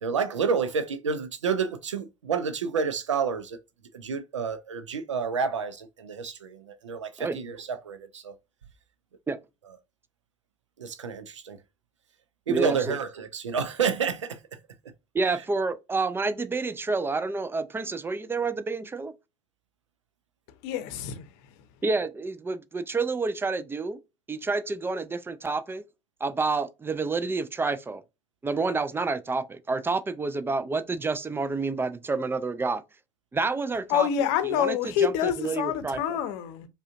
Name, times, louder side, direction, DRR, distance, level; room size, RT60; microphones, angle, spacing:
voice 1, 0.0-3.6 3.9-8.3 10.8-11.6 12.5-14.4, right 6 dB, 80° right, 0.5 m, -29 dB
voice 2, 12.5-13.0 15.1-19.1 21.8-24.0 24.3-25.8 26.2-28.0 28.4-32.8 33.3-34.1 34.4-36.2, right 3 dB, 15° right, 0.4 m, -29 dB
voice 3, 20.6-21.3 33.9-36.7, left 9 dB, 60° left, 0.7 m, -27 dB
4.9 x 2.3 x 2.5 m
figure-of-eight pair, 60°, 15 cm